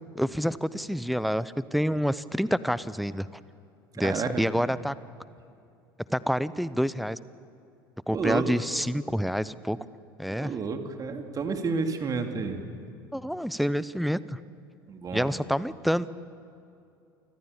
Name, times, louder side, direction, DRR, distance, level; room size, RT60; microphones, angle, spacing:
voice 1, 0.1-3.3 4.0-4.9 6.1-7.2 8.1-9.9 10.2-10.5 13.1-14.4 15.1-16.1, equal, ahead, 18 dB, 0.8 m, -28 dB
voice 2, 4.0-4.4 8.1-8.6 10.3-12.6 14.9-15.3, right 4 dB, 30° right, 5 dB, 2.9 m, -30 dB
29.5 x 25.0 x 7.1 m, 2.6 s
figure-of-eight pair, 70°, 12 cm